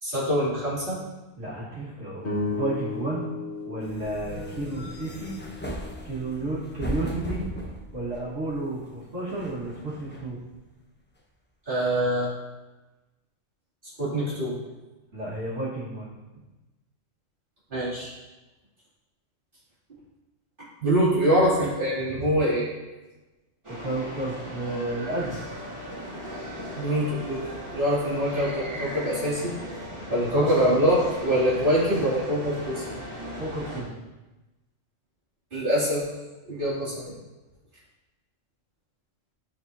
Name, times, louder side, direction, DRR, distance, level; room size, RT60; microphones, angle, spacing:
voice 1, 0.0-1.0 11.7-12.3 14.0-14.6 17.7-18.1 20.8-22.7 26.7-27.4 27.7-29.6 30.1-33.0 35.5-36.0 36.5-37.1, equal, 45° right, -10 dB, 2.7 m, -24 dB
voice 2, 1.4-3.3 3.7-5.3 6.0-7.4 7.9-10.4 15.1-16.1 23.7-25.4 30.3-30.7 33.4-34.0, right 2 dB, 75° right, -10 dB, 1.9 m, -32 dB
sound 1, 2.2-6.7, left 3 dB, 60° left, 1.6 m, -35 dB
sound 2, 3.8-8.7 9.3-10.4, equal, 15° left, 0.5 m, -37 dB
sound 3, 23.6-33.8, equal, 25° right, 2.1 m, -38 dB
11.0 x 4.3 x 2.7 m, 1.1 s
omnidirectional pair, 1.3 m